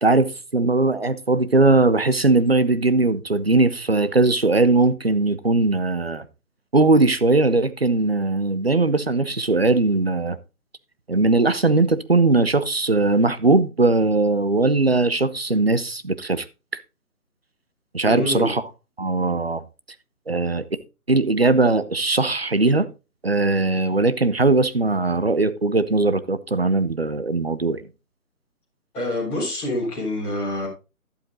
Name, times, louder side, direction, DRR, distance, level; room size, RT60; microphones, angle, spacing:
voice 1, 0.0-6.3 6.7-10.4 11.1-16.5 17.9-18.6 19.0-19.6 20.3-20.6 21.1-22.9 23.2-27.8, right 3 dB, 45° right, 0.7 m, -19 dB
voice 2, 18.0-18.5 28.9-30.7, left 1 dB, 5° left, 4.2 m, -26 dB
11.5 x 7.8 x 3.9 m
hypercardioid pair, 180°, 45 cm